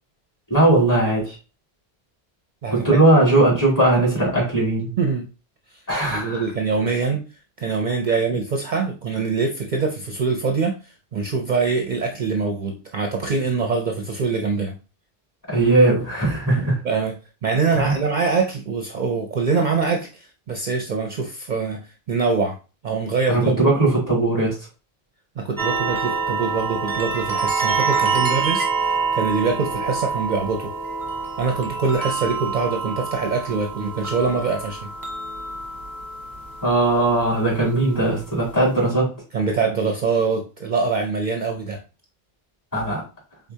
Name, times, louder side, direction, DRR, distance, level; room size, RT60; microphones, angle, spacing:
voice 1, 0.5-1.4 2.7-4.9 5.9-6.5 15.5-16.8 17.7-18.0 23.3-24.6 36.6-39.1 42.7-43.1, right 2 dB, 15° left, -6 dB, 2.5 m, -19 dB
voice 2, 5.0-5.3 6.1-7.2 7.6-14.7 16.8-17.1 17.4-21.8 22.1-22.6 22.8-23.6 25.4-30.7 31.4-34.9 39.3-41.8, right 4 dB, 50° right, 3 dB, 0.7 m, -24 dB
sound 1, 25.6-38.9, right 5 dB, 20° right, 1.0 m, -27 dB
4.7 x 3.8 x 2.7 m, 0.33 s
omnidirectional pair, 1.1 m